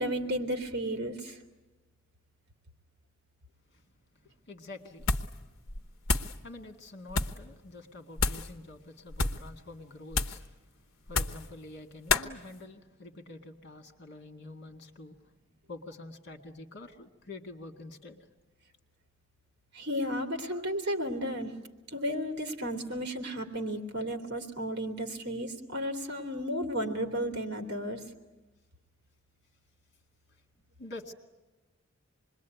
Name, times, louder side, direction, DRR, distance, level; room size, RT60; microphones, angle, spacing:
voice 1, 0.0-1.3 19.7-21.5 21.9-28.0, equal, 50° right, 6 dB, 3.0 m, -33 dB
voice 2, 4.5-5.1 6.4-10.5 11.1-15.2 15.7-18.2 20.5-20.6 30.8-31.1, left 2 dB, 50° left, 4 dB, 2.2 m, -47 dB
sound 1, 5.0-5.4 5.7-6.4 7.1-7.4 8.2-8.5 9.1-9.5 10.1-10.5 11.1-11.5 12.1-12.3, left 3 dB, 70° left, 1.1 m, -29 dB
27.0 x 21.5 x 9.4 m, 1.1 s
head